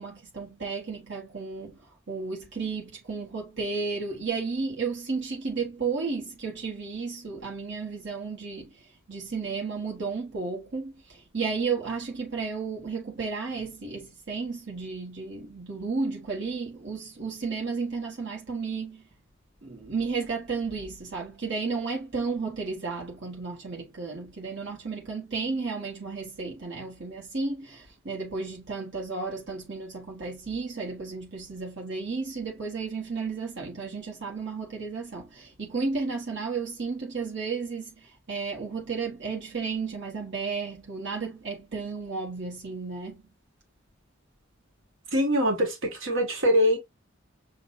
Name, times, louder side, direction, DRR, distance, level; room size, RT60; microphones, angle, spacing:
voice 1, 0.0-19.1 19.6-43.3, right 4 dB, 60° right, 1.5 m, -33 dB
voice 2, 45.1-46.8, equal, 75° right, 1.6 m, -23 dB
6.0 x 2.6 x 2.6 m
head